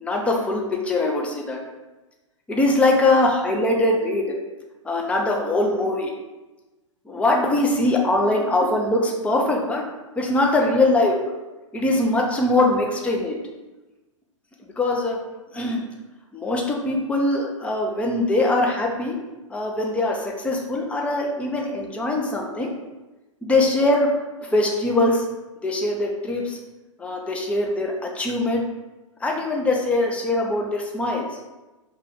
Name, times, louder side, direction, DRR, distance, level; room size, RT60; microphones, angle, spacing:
voice 1, 0.0-1.6 2.5-4.4 4.8-6.1 7.1-9.8 10.2-11.3 11.7-13.4 14.8-15.2 15.5-15.8 16.3-19.2 19.5-22.7 23.4-24.1 24.5-25.2 25.6-26.6 27.0-28.6 29.2-31.3, left 2 dB, 5° left, 0 dB, 0.5 m, -22 dB
4.6 x 2.3 x 3.6 m, 1.1 s
figure-of-eight pair, 105°, 17 cm